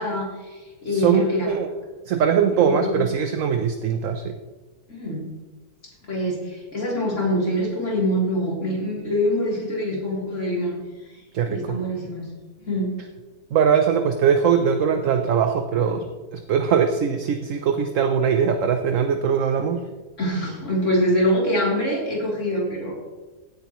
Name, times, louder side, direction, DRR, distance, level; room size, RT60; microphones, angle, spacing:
voice 1, 0.0-1.5 2.6-3.0 4.9-5.3 6.1-10.8 11.5-12.3 12.6-12.9 15.7-15.9 20.2-22.9, equal, 50° left, -4 dB, 3.7 m, -24 dB
voice 2, 0.9-1.7 2.1-4.4 11.3-11.8 13.5-16.1 16.3-19.8, right 7 dB, 65° right, 6 dB, 1.0 m, -21 dB
16.0 x 9.2 x 3.1 m, 1.2 s
omnidirectional pair, 1.6 m